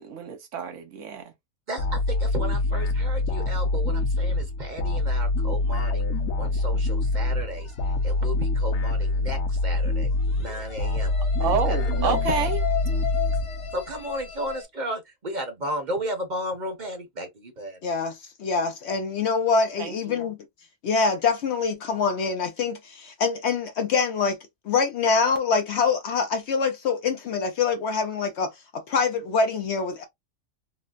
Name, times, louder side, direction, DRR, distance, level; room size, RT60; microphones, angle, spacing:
voice 1, 0.0-1.3 11.4-12.6 19.8-20.2, right 6 dB, 70° right, 1.0 m, -29 dB
voice 2, 1.7-6.0 6.4-10.1 10.4-11.1 11.4-12.5 13.7-17.8, right 1 dB, 40° right, 0.9 m, -34 dB
sound 1, 1.8-14.0, left 2 dB, 85° left, 1.1 m, -25 dB
sound 2, 7.1-7.9 10.1-14.6, left 9 dB, 45° left, 1.5 m, -34 dB
voice 3, 17.8-20.4 20.8-24.4 24.7-30.0, left 5 dB, 65° left, 0.8 m, -25 dB
4.0 x 2.1 x 2.4 m
omnidirectional pair, 1.4 m